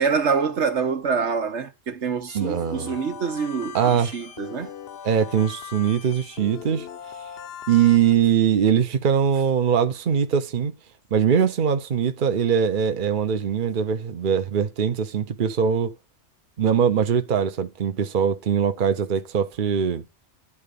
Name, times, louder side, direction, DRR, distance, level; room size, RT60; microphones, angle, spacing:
voice 1, 0.0-4.7, right 5 dB, 85° right, 1.5 m, -26 dB
sound 1, 2.3-8.2, left 9 dB, 65° left, 0.9 m, -39 dB
voice 2, 2.3-2.9 3.7-4.1 5.0-6.9 7.7-10.7 11.1-15.9 16.6-20.0, right 7 dB, 50° right, 0.9 m, -22 dB
11.0 x 3.8 x 6.8 m
omnidirectional pair, 1.2 m